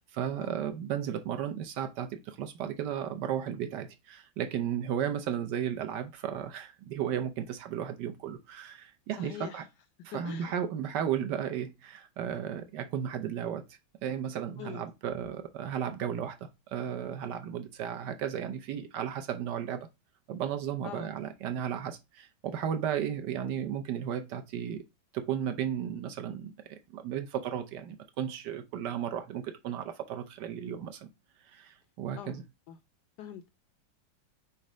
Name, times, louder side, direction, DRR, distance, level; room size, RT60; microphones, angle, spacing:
voice 1, 0.0-9.6 10.0-19.9 20.3-24.8 25.1-31.1 31.4-32.4, right 9 dB, 70° right, 1.1 m, -34 dB
voice 2, 9.1-9.7 10.1-10.6 14.6-14.8 20.8-21.1 32.2-32.4 32.7-32.8 33.2-33.5, left 9 dB, 75° left, 1.0 m, -43 dB
4.5 x 4.2 x 5.0 m
omnidirectional pair, 2.2 m